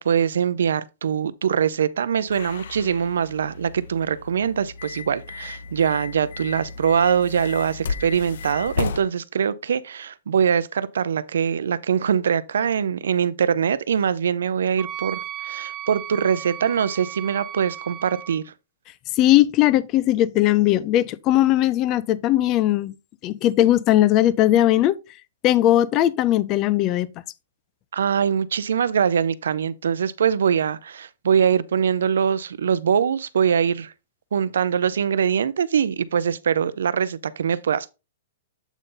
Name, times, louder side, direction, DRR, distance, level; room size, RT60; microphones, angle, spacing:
voice 1, 0.0-18.5 27.9-33.9 34.3-37.9, right 7 dB, 85° right, 0.5 m, -23 dB
sound 1, 2.3-9.0, left 5 dB, 65° left, 0.8 m, -34 dB
Wind instrument woodwind instrument, 14.8-18.4, right 11 dB, 20° right, 0.9 m, -35 dB
voice 2, 19.1-22.9 23.2-25.0 25.4-27.1, left 13 dB, 25° left, 0.4 m, -19 dB
8.1 x 4.0 x 3.8 m
hypercardioid pair, 170°, 0 cm